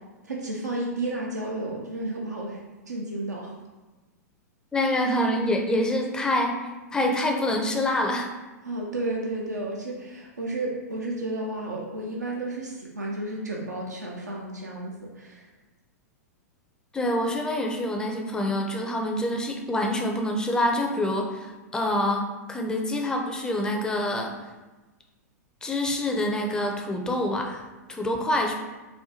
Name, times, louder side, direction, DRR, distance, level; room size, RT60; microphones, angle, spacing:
voice 1, 0.2-3.5 8.6-15.4, right 2 dB, 90° right, -3 dB, 0.5 m, -32 dB
voice 2, 4.7-6.5 6.9-8.3 16.9-24.3 25.6-27.6 27.9-28.6, left 1 dB, 10° left, 1 dB, 0.4 m, -26 dB
4.2 x 2.2 x 2.7 m, 1.2 s
figure-of-eight pair, 100°, 9 cm